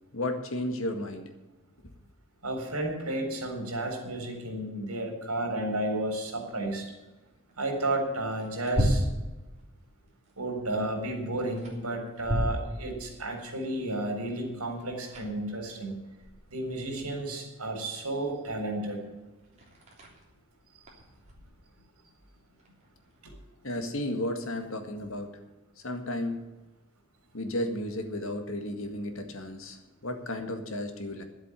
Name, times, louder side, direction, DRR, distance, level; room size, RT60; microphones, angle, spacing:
voice 1, 0.1-1.3 23.6-25.4 25.8-26.4 27.3-31.2, left 1 dB, 60° left, 6 dB, 1.9 m, -33 dB
voice 2, 2.4-6.9 7.6-9.0 10.4-16.0 16.5-19.0 23.2-23.3, right 1 dB, 85° right, 3 dB, 4.1 m, -32 dB
sound 1, 6.0-23.2, equal, 30° right, 3.3 m, -37 dB
11.0 x 8.0 x 9.9 m, 1.1 s
head